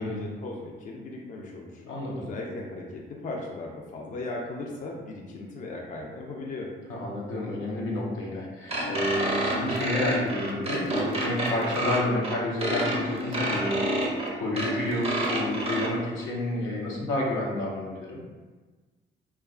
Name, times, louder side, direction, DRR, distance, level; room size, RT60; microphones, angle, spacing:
voice 1, 0.0-1.8 2.1-6.7, left 2 dB, 40° left, -1 dB, 0.4 m, -37 dB
voice 2, 1.8-2.3 6.9-18.2, left 1 dB, 80° left, -3 dB, 0.7 m, -30 dB
sound 1, 8.7-15.9, right 1 dB, 30° right, 0.5 m, -29 dB
2.7 x 2.3 x 2.3 m, 1.3 s
cardioid pair, 90°, 20 cm